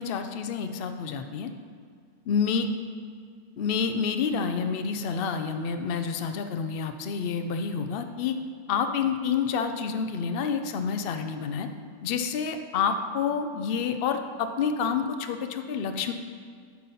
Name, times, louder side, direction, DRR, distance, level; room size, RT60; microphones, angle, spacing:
voice 1, 0.0-1.5 2.3-2.7 3.6-8.3 8.7-11.7 12.0-16.1, left 6 dB, 90° left, 7 dB, 0.5 m, -28 dB
10.5 x 4.1 x 5.5 m, 2.1 s
omnidirectional pair, 1.7 m